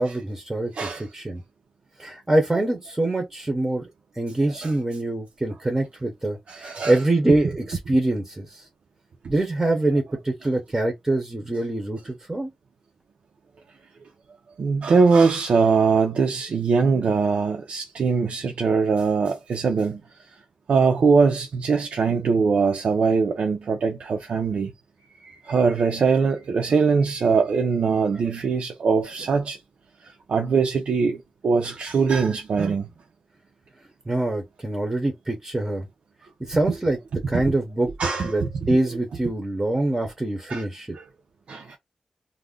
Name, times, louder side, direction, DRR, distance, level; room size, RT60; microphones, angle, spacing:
voice 1, 0.0-1.4 2.0-3.9 4.2-8.6 9.3-12.5 34.1-35.9 36.5-37.0 37.3-37.9 38.2-41.0, right 2 dB, 15° right, 0.6 m, -24 dB
voice 2, 0.7-1.1 4.6-4.7 6.5-7.0 14.6-20.0 20.7-24.7 25.2-29.6 30.0-32.9 37.3-37.5 38.0-38.7 40.5-40.7 40.9-41.1 41.5-41.8, right 5 dB, 75° right, 0.4 m, -22 dB
2.4 x 2.0 x 3.5 m
wide cardioid pair, 175°, 2 cm